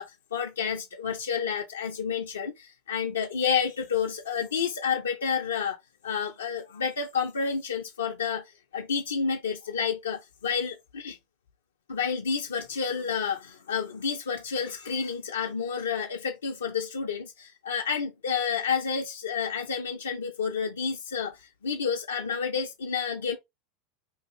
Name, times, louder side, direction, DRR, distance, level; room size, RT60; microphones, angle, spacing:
voice 1, 0.0-2.5 2.9-5.8 6.0-8.4 8.7-11.2 11.9-21.3 21.6-23.4, left 6 dB, 80° left, 0.4 m, -30 dB
2.6 x 2.3 x 3.0 m
figure-of-eight pair, 80°, 0 cm